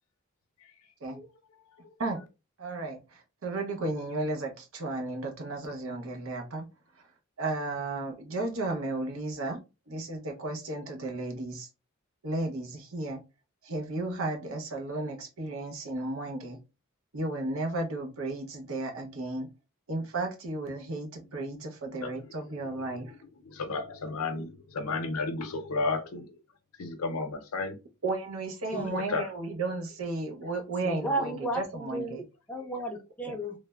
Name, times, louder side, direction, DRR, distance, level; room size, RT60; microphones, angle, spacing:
voice 1, 2.6-6.7 7.4-9.6 9.9-11.7 12.2-13.2 13.6-16.6 17.1-19.5 19.9-23.1 28.0-32.2 33.3-33.4, right 2 dB, 70° right, 0.7 m, -34 dB
voice 2, 23.5-26.3 26.8-27.8 28.8-29.3, left 3 dB, 85° left, 0.6 m, -33 dB
voice 3, 30.8-33.6, right 1 dB, 5° left, 0.5 m, -34 dB
3.1 x 2.0 x 2.2 m
head